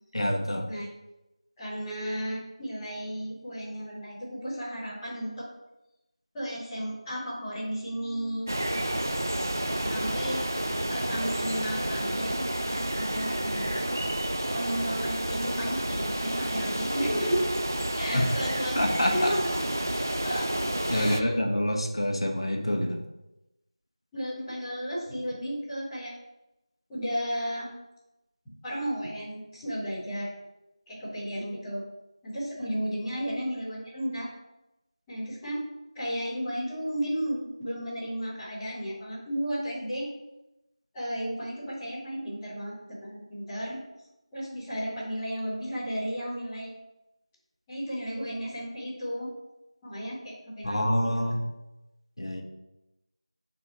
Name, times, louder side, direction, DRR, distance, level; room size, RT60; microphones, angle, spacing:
voice 1, 0.1-0.7 18.1-18.3 18.8-19.3 20.9-23.0 50.6-51.4 52.2-52.4, left 1 dB, 55° left, 2 dB, 1.1 m, -26 dB
voice 2, 1.6-5.5 6.3-8.5 9.8-10.4 10.9-13.8 14.5-17.4 17.9-19.6 20.2-20.5 20.9-21.4 24.1-26.1 26.9-27.7 28.6-30.3 30.9-31.8 32.2-34.3 35.1-35.6 35.9-40.0 40.9-43.8 44.3-46.7 47.7-49.3 49.8-51.1, equal, 5° left, -16 dB, 0.7 m, -33 dB
sound 1, 8.5-21.2, right 1 dB, 30° right, 0.3 m, -30 dB
6.2 x 4.1 x 3.9 m, 0.94 s
figure-of-eight pair, 175°, 3 cm